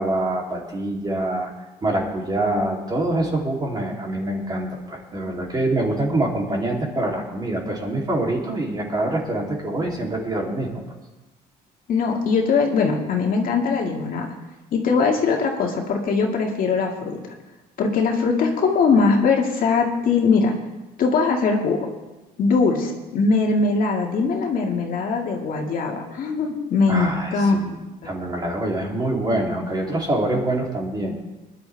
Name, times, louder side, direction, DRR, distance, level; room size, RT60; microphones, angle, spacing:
voice 1, 0.0-1.5 1.8-10.8 26.9-27.8 28.0-31.2, right 1 dB, 25° right, -1 dB, 3.1 m, -25 dB
voice 2, 11.9-14.3 14.7-17.2 17.8-20.5 21.0-21.9 22.4-27.6 28.0-28.1, left 4 dB, 55° left, 1 dB, 2.1 m, -21 dB
21.5 x 11.0 x 3.4 m, 1.1 s
cardioid pair, 110°, 17 cm